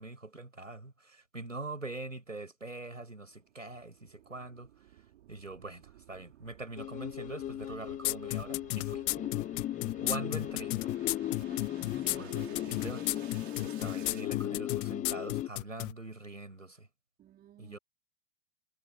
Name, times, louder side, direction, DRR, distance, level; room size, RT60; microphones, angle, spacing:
voice 1, 0.0-4.7 5.3-9.0 10.0-10.7 12.2-13.0 13.6-16.9 17.6-17.8, right 2 dB, 85° right, 6.5 m, -43 dB
sound 1, 3.0-14.3, right 13 dB, 55° right, 6.2 m, -55 dB
sound 2, 6.8-15.5, left 13 dB, 20° left, 0.8 m, -37 dB
sound 3, 8.0-15.9, left 23 dB, 45° left, 1.4 m, -33 dB
voice 2, 11.4-13.3 17.2-17.8, right 11 dB, 25° right, 2.6 m, -53 dB
figure-of-eight pair, 100°, 38 cm